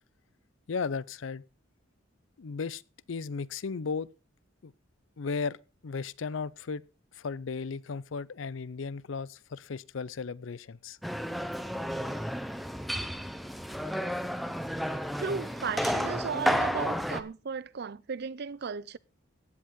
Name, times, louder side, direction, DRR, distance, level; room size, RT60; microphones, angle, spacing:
voice 1, 0.7-1.4 2.4-2.8 3.1-4.1 4.6-4.7 5.2-5.6 5.8-6.8 7.1-11.0, left 5 dB, 75° left, 0.5 m, -35 dB
sound 1, 11.0-17.2, equal, ahead, 0.8 m, -32 dB
voice 2, 15.2-19.0, right 5 dB, 55° right, 0.5 m, -35 dB
15.5 x 10.0 x 3.6 m
head